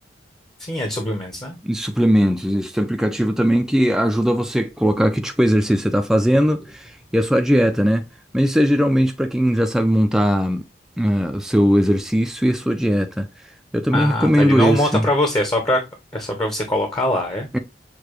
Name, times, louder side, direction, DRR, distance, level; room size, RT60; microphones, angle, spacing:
voice 1, 0.6-1.6 13.9-15.8 16.1-17.5, left 1 dB, 25° left, 0.7 m, -22 dB
voice 2, 1.6-8.0 8.3-10.7 11.0-13.3 13.7-15.1 17.5-17.6, equal, 5° right, 0.3 m, -19 dB
6.6 x 2.2 x 3.0 m
head